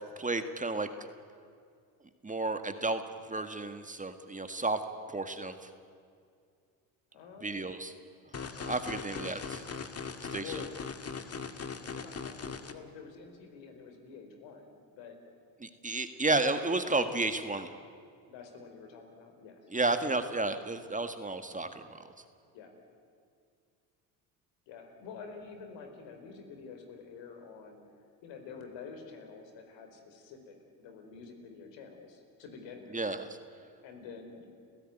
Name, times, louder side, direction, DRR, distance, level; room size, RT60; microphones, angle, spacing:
voice 1, 0.2-0.9 2.2-3.0 3.3-4.8 5.1-5.7 7.4-7.9 8.6-9.6 10.3-10.4 15.6-17.7 19.7-22.1 32.9-33.3, right 2 dB, 15° right, 8 dB, 1.7 m, -32 dB
voice 2, 7.1-7.7 10.3-10.7 11.5-15.2 18.2-19.7 22.5-22.7 24.7-27.8 28.2-33.0 33.8-34.5, left 5 dB, 70° left, 5 dB, 4.7 m, -48 dB
sound 1, 8.3-12.7, left 5 dB, 30° left, 2.0 m, -40 dB
29.5 x 16.0 x 9.2 m, 2.3 s
supercardioid pair, 75°, 45 cm